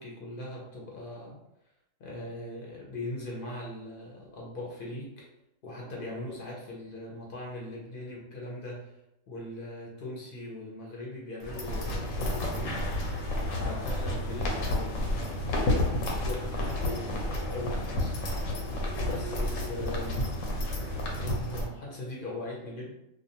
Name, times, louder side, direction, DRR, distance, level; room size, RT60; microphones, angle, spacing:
voice 1, 0.0-1.4 2.0-5.3 5.6-9.0 9.3-12.8 13.6-15.7 15.9-18.2 19.0-20.3 21.2-22.9, left 1 dB, 55° left, -3 dB, 0.7 m, -40 dB
sound 1, 11.4-21.7, left 1 dB, 80° left, 1.0 m, -31 dB
2.4 x 2.2 x 2.7 m, 0.87 s
omnidirectional pair, 1.3 m